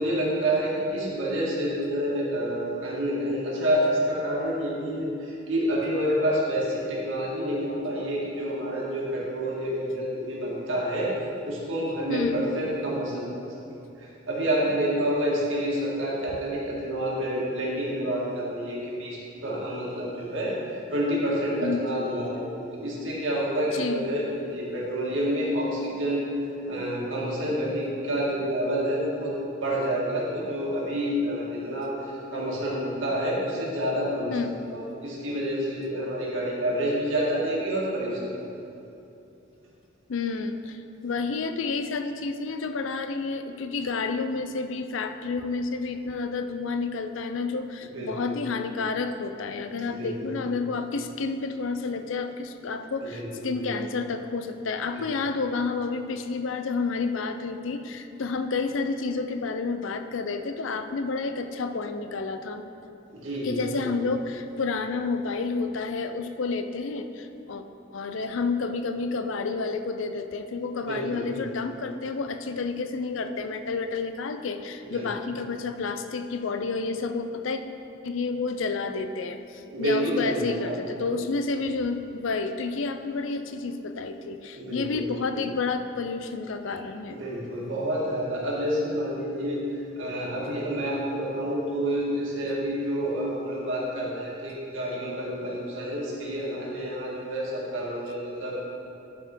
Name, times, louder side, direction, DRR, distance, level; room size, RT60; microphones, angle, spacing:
voice 1, 0.0-11.1 11.4-13.3 14.0-26.3 26.7-29.4 29.6-34.4 34.7-38.3 47.8-48.4 49.9-50.4 53.0-53.7 54.9-55.0 63.1-64.0 70.8-71.4 74.8-75.1 79.7-80.9 84.6-85.0 85.3-85.5 86.7-86.8 87.1-98.6, equal, 75° right, -5 dB, 1.9 m, -28 dB
voice 2, 12.1-12.4 21.6-21.8 23.7-24.0 34.3-34.5 40.1-62.6 63.4-67.6 67.9-77.6 78.0-87.2, left 4 dB, 75° left, 8 dB, 0.5 m, -30 dB
11.0 x 4.8 x 4.5 m, 2.8 s
head